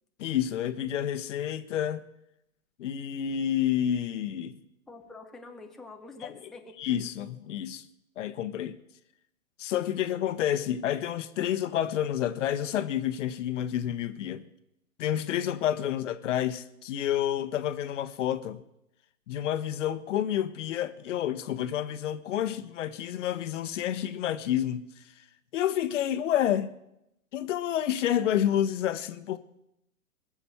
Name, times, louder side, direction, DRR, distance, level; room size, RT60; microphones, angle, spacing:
voice 1, 0.2-2.0 2.8-4.6 6.2-6.3 6.8-7.8 8.2-8.8 9.6-14.4 15.0-18.6 19.3-24.9 25.5-26.7 27.3-29.4, left 10 dB, 55° left, 1.1 m, -29 dB
voice 2, 4.9-6.8, left 3 dB, ahead, 0.8 m, -46 dB
21.0 x 7.2 x 7.0 m
hypercardioid pair, 115°, 44 cm